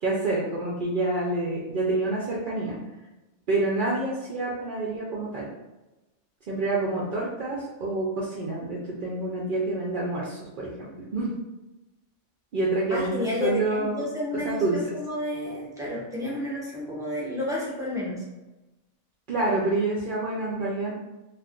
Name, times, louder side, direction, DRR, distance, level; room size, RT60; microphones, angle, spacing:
voice 1, 0.0-2.8 3.5-5.5 6.5-11.3 12.5-14.1 14.4-14.9 19.3-20.9, right 2 dB, 65° right, -5 dB, 0.5 m, -27 dB
voice 2, 12.9-18.2, left 1 dB, 5° right, -6 dB, 0.5 m, -31 dB
2.5 x 2.4 x 3.5 m, 1.1 s
omnidirectional pair, 1.5 m